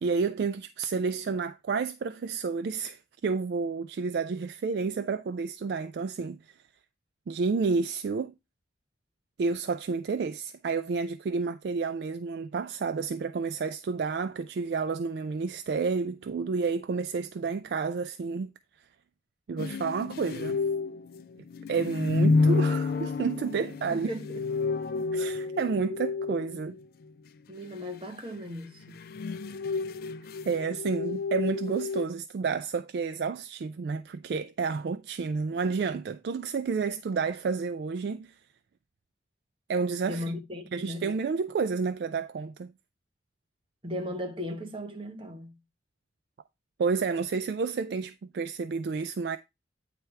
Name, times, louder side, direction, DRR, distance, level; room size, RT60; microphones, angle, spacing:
voice 1, 0.0-6.6 7.3-8.3 9.4-18.5 19.5-20.6 21.7-24.1 25.1-26.8 30.4-38.4 39.7-40.2 40.7-42.7 46.8-49.4, right 5 dB, 60° right, 0.3 m, -30 dB
sound 1, 19.6-26.8 28.7-32.0, left 4 dB, 55° left, 0.3 m, -30 dB
voice 2, 23.9-24.4 25.3-25.5 27.5-29.0 40.0-41.1 43.8-45.6, left 1 dB, 30° right, 1.0 m, -37 dB
8.9 x 3.3 x 4.6 m
head